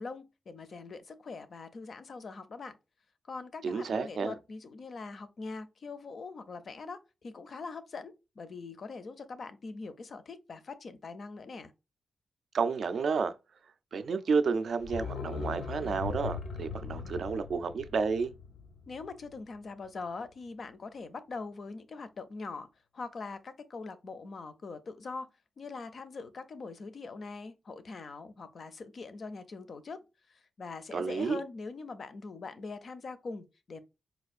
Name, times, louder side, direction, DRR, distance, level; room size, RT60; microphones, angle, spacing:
voice 1, 0.0-2.8 3.3-11.7 18.9-22.7 22.9-25.3 25.6-30.0 30.3-33.8, left 4 dB, 45° left, 0.5 m, -42 dB
voice 2, 3.6-4.4 12.5-13.3 13.9-18.3 30.9-31.4, right 5 dB, 60° right, 0.3 m, -31 dB
sound 1, 14.8-19.6 19.9-20.0, left 5 dB, 90° left, 0.6 m, -40 dB
4.3 x 2.4 x 2.4 m
wide cardioid pair, 150°, 0 cm